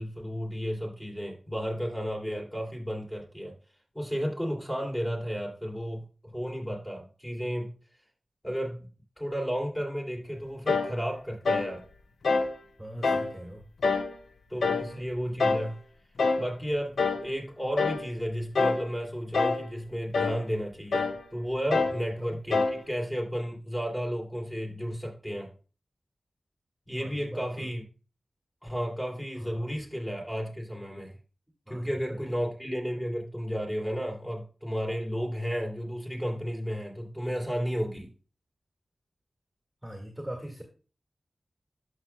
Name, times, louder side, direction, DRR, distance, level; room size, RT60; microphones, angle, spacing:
voice 1, 0.0-3.5 3.9-7.7 8.4-8.9 9.2-11.8 14.5-15.8 16.4-25.5 26.9-27.8 28.6-31.1 31.7-38.1, equal, 15° left, -1 dB, 2.9 m, -33 dB
sound 1, 10.7-11.0 11.4-11.7 12.2-12.5 13.0-13.3 13.8-14.1 14.6-14.9 15.4-15.7 16.2-16.5 17.0-17.3 17.8-18.1 18.5-18.9 19.3-19.7 20.1-20.4 20.9-21.2 21.7-22.0 22.5-22.8, left 4 dB, 85° left, 0.7 m, -26 dB
voice 2, 12.8-13.6 21.7-21.9 22.2-22.4 27.0-27.7 29.4-29.7 31.7-32.2 39.8-40.6, right 1 dB, 5° right, 1 dB, 1.9 m, -41 dB
13.0 x 5.9 x 2.3 m, 0.36 s
wide cardioid pair, 65°, 0 cm